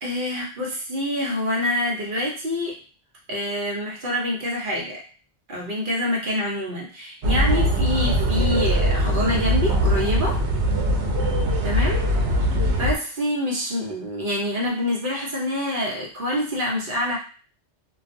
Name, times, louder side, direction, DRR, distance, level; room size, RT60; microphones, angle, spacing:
voice 1, 0.0-2.8 3.3-5.0 5.5-10.4 11.6-12.1 12.5-17.2, left 1 dB, 55° right, -3 dB, 0.9 m, -26 dB
sound 1, 7.2-13.0, equal, 85° right, 0.9 m, -21 dB
2.4 x 2.2 x 2.5 m, 0.38 s
omnidirectional pair, 1.1 m